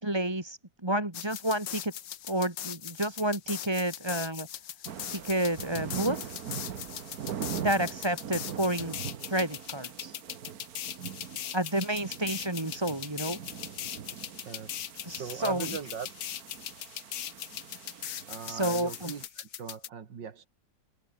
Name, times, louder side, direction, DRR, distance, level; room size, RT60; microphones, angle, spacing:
voice 1, 0.0-1.9 2.3-4.5 5.1-6.3 7.6-9.0 9.3-10.2 11.5-13.4 15.0-15.8 18.5-19.1, right 1 dB, 15° right, 2.2 m, -30 dB
sound 1, 1.1-19.9, left 10 dB, 85° left, 1.8 m, -40 dB
sound 2, 4.8-19.3, right 9 dB, 60° right, 1.5 m, -42 dB
voice 2, 14.4-14.8 15.1-16.1 18.3-20.5, right 7 dB, 80° right, 2.6 m, -39 dB
omnidirectional pair, 1.9 m